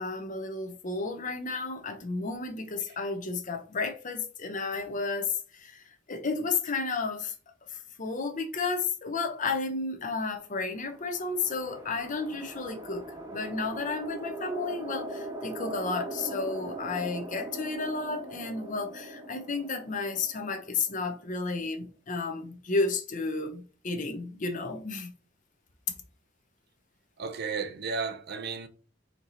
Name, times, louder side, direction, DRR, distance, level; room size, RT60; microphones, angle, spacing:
voice 1, 0.0-7.3 7.7-13.0 13.3-25.1, left 4 dB, 40° left, 0.7 m, -32 dB
sound 1, 10.7-21.2, right 1 dB, 20° right, 0.8 m, -40 dB
voice 2, 27.2-28.7, right 5 dB, 55° right, 0.6 m, -33 dB
4.5 x 2.8 x 3.9 m
head